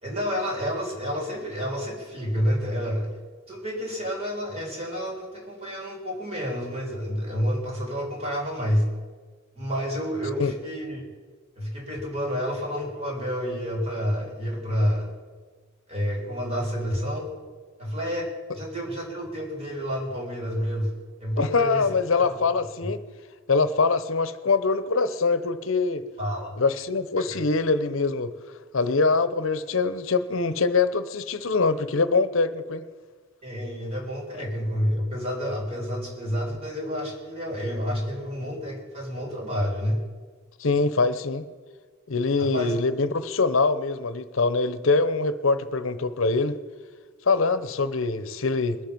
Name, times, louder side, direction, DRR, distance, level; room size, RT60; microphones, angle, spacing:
voice 1, 0.0-3.1 3.5-8.9 9.6-11.0 11.6-15.1 15.9-17.3 17.8-20.9 21.2-22.4 26.2-26.6 27.2-27.4 33.4-40.0 42.4-42.8, equal, 30° right, -1 dB, 3.7 m, -29 dB
voice 2, 21.4-23.0 23.5-26.0 26.6-28.3 28.7-32.8 40.6-41.5 42.1-46.6 47.3-48.8, left 4 dB, 70° left, 13 dB, 0.8 m, -23 dB
21.5 x 7.6 x 5.4 m, 1.5 s
head